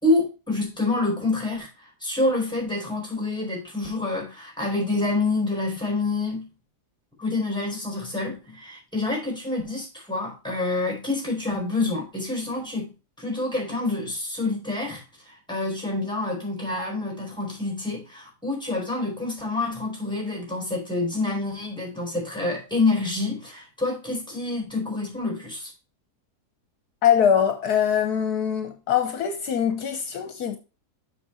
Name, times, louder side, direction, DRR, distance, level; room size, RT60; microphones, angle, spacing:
voice 1, 0.0-6.5 7.2-12.9 13.2-25.7, left 2 dB, 5° left, 4.0 m, -27 dB
voice 2, 27.0-30.6, left 8 dB, 70° left, 1.3 m, -23 dB
7.2 x 6.0 x 4.2 m
omnidirectional pair, 1.8 m